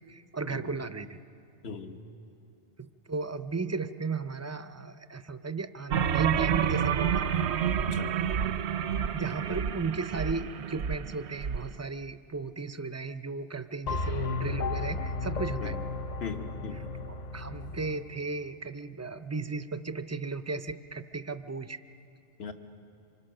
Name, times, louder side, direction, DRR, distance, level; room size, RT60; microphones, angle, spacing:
voice 1, 0.1-1.2 2.8-7.3 9.1-15.8 16.7-21.8, right 4 dB, 25° right, 11 dB, 0.3 m, -36 dB
voice 2, 1.6-2.0 7.8-8.2 15.6-15.8 16.2-16.8 22.4-22.5, left 6 dB, 70° left, 6 dB, 1.6 m, -38 dB
sound 1, 5.9-11.6, right 8 dB, 85° right, 1.0 m, -29 dB
sound 2, 13.9-18.1, left 3 dB, 50° left, 0.7 m, -34 dB
26.0 x 25.0 x 6.6 m, 2.7 s
omnidirectional pair, 1.1 m